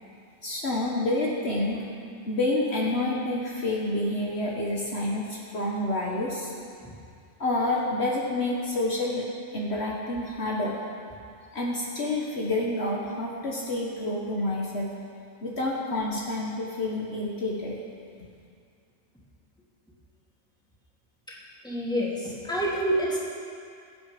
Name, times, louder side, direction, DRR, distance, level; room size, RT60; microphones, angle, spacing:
voice 1, 0.4-1.8 2.3-6.5 7.4-9.2 9.5-10.8 11.5-14.9 15.4-17.8, left 1 dB, 55° left, -3 dB, 1.7 m, -28 dB
voice 2, 21.6-23.2, right 1 dB, 5° left, -6 dB, 2.7 m, -28 dB
22.0 x 8.6 x 5.2 m, 2.4 s
omnidirectional pair, 1.3 m